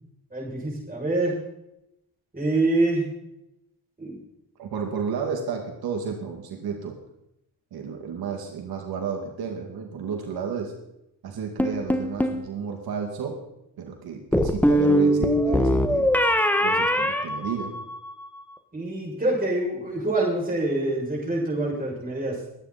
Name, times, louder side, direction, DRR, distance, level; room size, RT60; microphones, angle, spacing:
voice 1, 0.3-1.3 2.3-3.1 4.0-4.2 18.7-22.4, right 2 dB, 25° right, -3 dB, 6.6 m, -25 dB
voice 2, 4.6-7.0 7.7-10.7 11.2-13.4 13.8-16.1 16.6-17.7, right 6 dB, 90° right, 3 dB, 2.2 m, -32 dB
sound 1, 11.6-12.4 14.3-18.1, equal, 5° left, 1.4 m, -21 dB
22.5 x 9.4 x 4.2 m, 0.85 s
cardioid pair, 95°, 36 cm